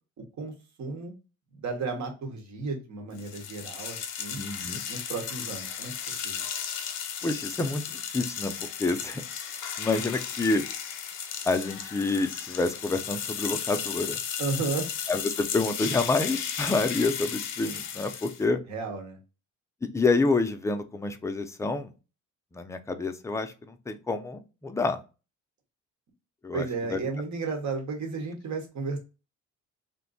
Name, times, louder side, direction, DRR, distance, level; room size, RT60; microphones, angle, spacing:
voice 1, 0.8-1.1 1.5-4.4 4.9-5.9 6.2-6.4 14.4-14.9 18.7-19.2 26.5-29.0, right 4 dB, 65° right, 3 dB, 1.1 m, -33 dB
sound 1, 3.2-18.5, left 8 dB, 80° left, 0.6 m, -35 dB
voice 2, 4.4-4.8 7.2-8.5 8.8-9.2 9.8-10.6 11.4-14.2 15.1-18.6 19.8-21.9 22.5-25.0 26.4-27.0, left 3 dB, 10° left, 7 dB, 0.4 m, -28 dB
2.6 x 2.2 x 3.8 m, 0.31 s
cardioid pair, 90°, 30 cm